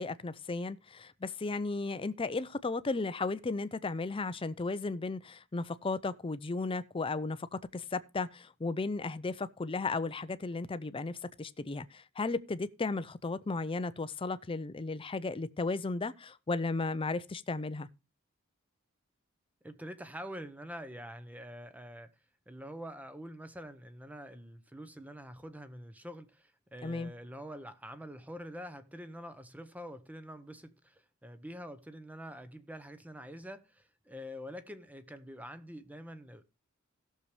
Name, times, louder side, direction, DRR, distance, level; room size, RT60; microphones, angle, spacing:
voice 1, 0.0-17.9 26.8-27.1, left 3 dB, 25° left, 0.5 m, -35 dB
voice 2, 19.6-22.1 22.5-36.4, equal, 5° right, 0.8 m, -46 dB
17.0 x 6.7 x 3.2 m
head